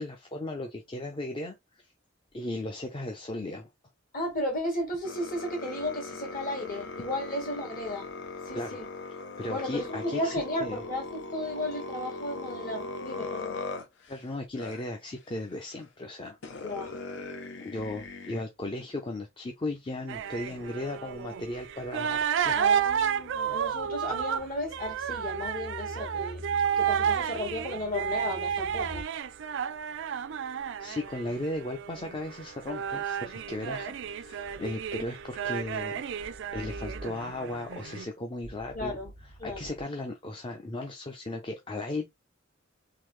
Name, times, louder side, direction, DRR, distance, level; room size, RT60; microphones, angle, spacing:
voice 1, 0.0-1.8 2.3-3.7 7.0-7.1 8.5-8.8 9.1-10.3 10.6-10.8 13.2-13.3 14.1-16.4 17.6-22.6 30.8-36.0 36.5-39.0 39.4-42.1, left 1 dB, 25° left, 0.6 m, -36 dB
voice 2, 4.1-8.1 8.4-8.9 9.5-13.7 16.5-17.0 22.5-29.0 36.6-37.0 38.7-39.1 39.4-39.7, left 1 dB, 45° left, 1.8 m, -34 dB
sound 1, 5.0-14.2 14.6-14.8 15.8-15.9 16.4-18.4, left 3 dB, 65° left, 0.7 m, -39 dB
sound 2, 20.1-38.1, right 8 dB, 65° right, 0.4 m, -31 dB
3.9 x 2.7 x 3.2 m
head